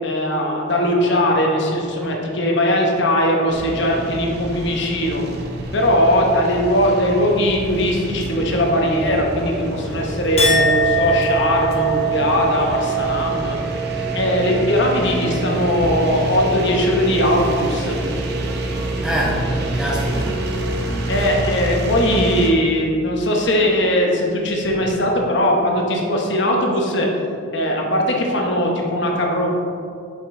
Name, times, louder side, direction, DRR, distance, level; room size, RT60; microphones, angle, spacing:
voice 1, 0.0-5.2 5.7-13.6 14.1-18.0 21.1-27.1 27.5-29.5, equal, 55° left, 0 dB, 0.9 m, -19 dB
sound 1, 3.5-22.5, right 1 dB, 50° right, 0.7 m, -27 dB
Chink clink, 10.4-16.9 17.3-17.9, right 3 dB, 30° left, 0.8 m, -24 dB
voice 2, 19.0-20.4 20.8-21.3 24.6-24.8, equal, 5° right, -4 dB, 0.7 m, -25 dB
7.2 x 5.3 x 3.7 m, 2.5 s
head